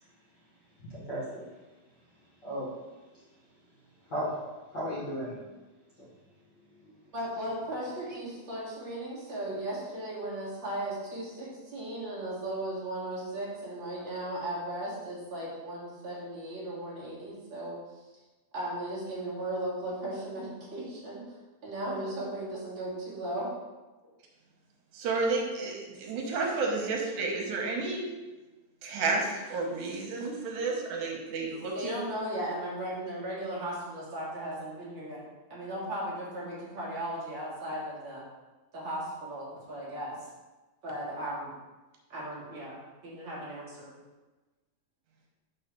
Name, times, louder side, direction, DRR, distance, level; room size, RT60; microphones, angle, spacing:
voice 1, 0.8-1.5 2.4-2.7 4.1-4.4 4.7-5.4 6.0-6.1, equal, 50° left, -7 dB, 1.3 m, -35 dB
voice 2, 7.1-18.0 18.5-23.5 31.7-35.3 35.5-38.2 38.7-40.3 40.8-41.6 42.1-43.9, right 1 dB, 45° right, -6 dB, 2.1 m, -36 dB
voice 3, 24.9-28.1 28.8-31.9, right 3 dB, 85° right, 0 dB, 2.5 m, -31 dB
5.7 x 3.7 x 5.8 m, 1.2 s
omnidirectional pair, 3.4 m